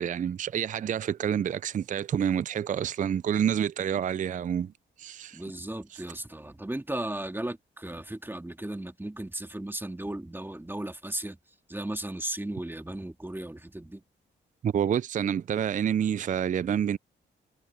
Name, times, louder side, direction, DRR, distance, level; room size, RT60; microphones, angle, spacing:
voice 1, 0.0-4.7 5.0-5.4 14.6-17.0, right 9 dB, 40° right, 0.4 m, -28 dB
voice 2, 5.3-11.4 11.7-14.0, right 1 dB, 10° right, 2.3 m, -36 dB
cardioid pair, 70°, 20 cm